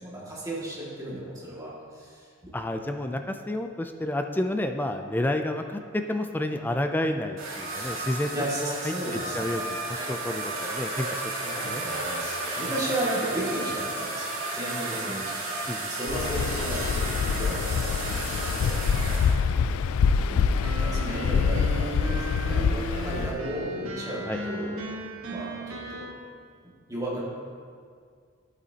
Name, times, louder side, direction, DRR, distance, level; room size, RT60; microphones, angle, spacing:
voice 1, 0.0-2.5 7.8-9.8 11.4-15.2 15.9-19.5 20.3-24.8 25.3-26.1 26.9-27.2, right 1 dB, 15° right, -6 dB, 2.0 m, -35 dB
voice 2, 2.5-8.3 8.6-8.9 9.3-11.2 11.6-11.8 14.9-15.2 15.7-15.9 24.3-24.4, left 1 dB, 10° left, 6 dB, 0.3 m, -30 dB
sound 1, 7.4-19.3, right 2 dB, 75° right, 2.2 m, -33 dB
Waves surf, 16.1-23.4, left 6 dB, 90° left, 0.3 m, -25 dB
sound 2, 20.6-26.1, right 2 dB, 90° right, 1.2 m, -36 dB
12.0 x 8.3 x 2.8 m, 2.1 s
head